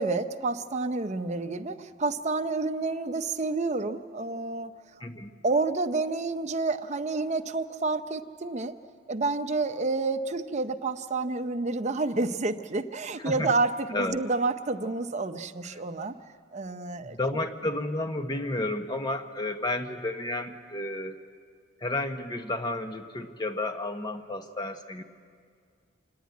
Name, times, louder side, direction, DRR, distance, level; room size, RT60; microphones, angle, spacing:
voice 1, 0.0-4.7 5.4-8.7 9.1-16.1 16.5-17.2, right 3 dB, 35° right, 8 dB, 0.7 m, -29 dB
voice 2, 5.0-5.3 13.2-13.5 13.9-14.2 17.0-21.2 21.8-25.0, left 2 dB, 20° left, 7 dB, 0.9 m, -31 dB
27.0 x 10.5 x 9.4 m, 2.1 s
head